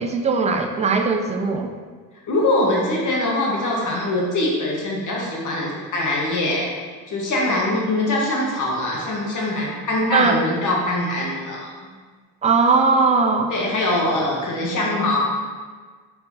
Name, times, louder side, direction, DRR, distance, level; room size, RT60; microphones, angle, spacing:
voice 1, 0.0-1.7 10.1-10.4 12.4-13.5, right 4 dB, 20° right, 4 dB, 0.4 m, -19 dB
voice 2, 2.3-6.7 7.1-11.9 13.5-15.2, left 1 dB, 50° left, -3 dB, 1.3 m, -23 dB
4.4 x 4.2 x 2.7 m, 1.5 s
cardioid pair, 85°, 39 cm